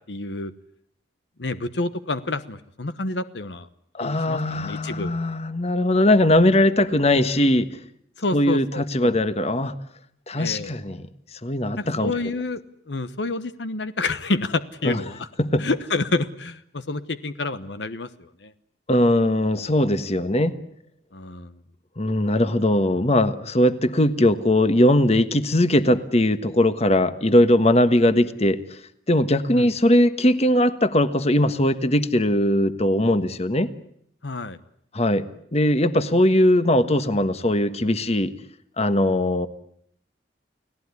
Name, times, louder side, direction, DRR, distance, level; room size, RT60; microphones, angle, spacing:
voice 1, 0.1-0.5 1.4-3.7 4.0-5.1 8.2-9.2 10.4-10.7 11.8-12.6 12.9-15.3 15.6-18.5 21.1-21.5 29.5-29.7 34.2-34.6, left 3 dB, 80° left, 12 dB, 1.1 m, -28 dB
voice 2, 3.9-7.7 8.3-9.7 10.3-11.1 11.4-12.1 14.8-15.0 15.4-15.7 18.9-20.5 22.0-28.6 29.1-33.7 34.9-35.2 35.5-38.3 38.8-39.5, left 1 dB, 35° left, 11 dB, 1.4 m, -20 dB
30.0 x 18.0 x 9.8 m, 0.71 s
head